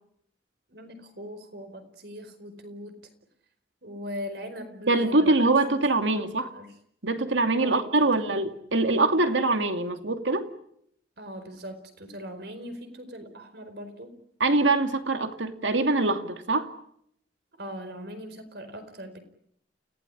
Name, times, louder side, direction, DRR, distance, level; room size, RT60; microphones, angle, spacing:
voice 1, 0.7-2.9 3.8-5.4 6.0-6.8 7.6-8.3 11.2-14.1 17.5-19.2, equal, 60° right, 9 dB, 4.7 m, -40 dB
voice 2, 4.9-6.5 7.0-10.5 14.4-16.7, right 2 dB, 90° right, 7 dB, 2.5 m, -24 dB
29.5 x 16.5 x 10.0 m, 0.73 s
head